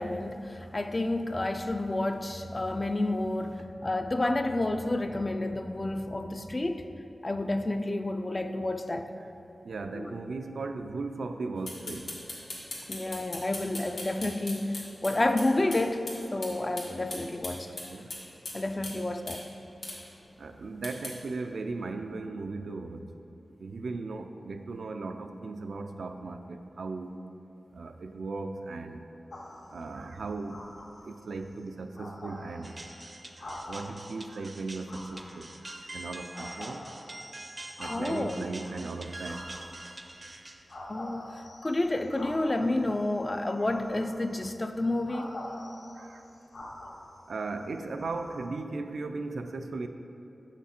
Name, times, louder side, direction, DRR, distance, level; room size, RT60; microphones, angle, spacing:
voice 1, 0.0-6.9 7.2-9.1 9.9-10.1 12.9-16.0 16.3-17.7 18.5-19.5 37.9-38.4 40.9-45.3, left 2 dB, 30° left, 0.3 m, -30 dB
voice 2, 9.6-12.2 17.7-18.1 20.4-23.1 23.6-27.2 27.7-29.1 29.7-30.6 31.0-32.8 33.4-36.9 37.8-39.5 45.9-46.3 47.3-49.9, right 3 dB, 85° right, 0.4 m, -37 dB
sound 1, 11.7-15.8 16.1-16.2 16.4-16.5 16.8-18.6 18.8-18.9 19.3-19.4 19.8-20.0 20.8-21.1, left 2 dB, 85° left, 1.5 m, -38 dB
sound 2, 29.3-29.9 30.5-31.2 31.7-31.8 31.9-34.1 34.9-35.9 36.3-38.5 39.2-40.1 40.7-42.9 43.6-44.4 45.1-47.4 48.0-48.5, left 1 dB, 65° left, 0.9 m, -45 dB
sound 3, 32.6-40.9, right 1 dB, 30° right, 0.5 m, -45 dB
7.2 x 5.9 x 4.3 m
wide cardioid pair, 105°, 0 cm